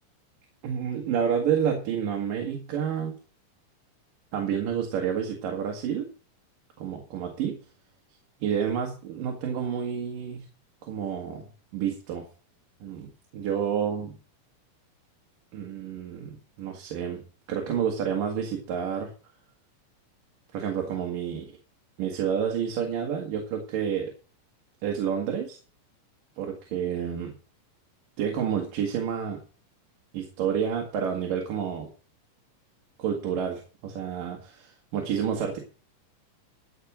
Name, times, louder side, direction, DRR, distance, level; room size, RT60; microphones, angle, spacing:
voice 1, 0.6-3.1 4.3-6.1 6.8-7.6 8.4-10.4 10.8-11.5 11.7-12.3 12.8-13.1 13.3-14.1 15.5-16.3 16.6-17.2 17.5-19.1 20.5-21.5 22.0-24.1 24.8-25.6 26.4-27.3 28.2-29.4 30.1-31.9 33.0-35.6, right 8 dB, 80° right, 1 dB, 3.3 m, -29 dB
14.5 x 4.9 x 7.6 m, 0.38 s
omnidirectional pair, 3.9 m